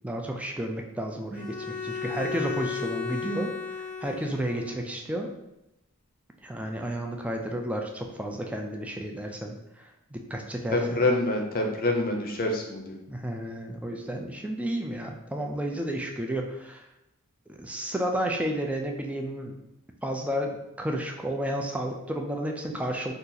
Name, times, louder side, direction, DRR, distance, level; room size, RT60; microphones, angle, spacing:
voice 1, 0.0-3.5 4.0-5.3 6.4-11.0 13.1-16.8 17.5-19.6 20.0-23.1, right 1 dB, 5° right, 2 dB, 0.3 m, -32 dB
Bowed string instrument, 1.3-4.8, left 5 dB, 10° left, 0.8 m, -34 dB
voice 2, 10.7-13.0, left 2 dB, 40° left, 2 dB, 0.6 m, -26 dB
2.8 x 2.4 x 3.8 m, 0.91 s
head